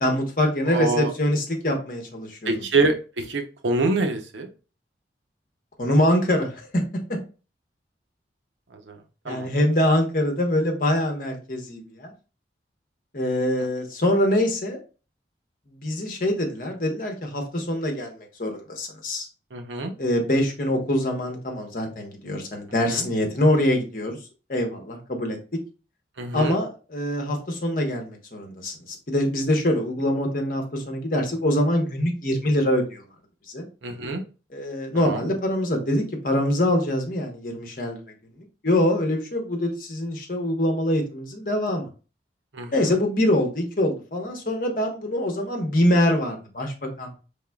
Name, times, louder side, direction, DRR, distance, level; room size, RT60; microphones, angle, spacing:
voice 1, 0.0-2.5 5.8-6.8 9.3-12.1 13.1-14.8 15.7-19.3 20.0-24.2 24.5-25.4 26.3-33.0 33.5-33.7 34.5-38.0 38.6-41.9 42.7-47.1, left 1 dB, 45° left, 2 dB, 1.0 m, -24 dB
voice 2, 0.7-1.1 2.5-4.5 8.9-9.0 9.2-9.5 19.5-19.9 22.9-23.0 26.2-26.6 33.8-34.2 34.9-35.2 42.5-43.0, right 3 dB, 85° right, 5 dB, 0.8 m, -26 dB
4.8 x 3.6 x 2.3 m, 0.34 s
head